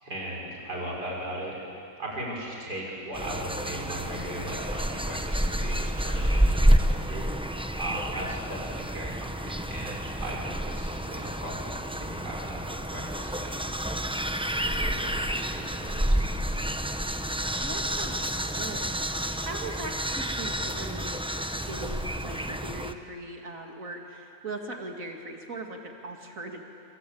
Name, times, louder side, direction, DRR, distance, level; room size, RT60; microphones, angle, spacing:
voice 1, 0.0-1.6 2.0-7.3 7.8-12.6 12.9-13.5 14.6-16.2, right 1 dB, 90° right, -3 dB, 6.5 m, -38 dB
sound 1, 3.1-22.9, equal, 5° right, 0.5 m, -29 dB
voice 2, 17.5-26.6, right 2 dB, 55° right, 2 dB, 2.8 m, -40 dB
27.5 x 23.5 x 8.7 m, 2.6 s
omnidirectional pair, 1.7 m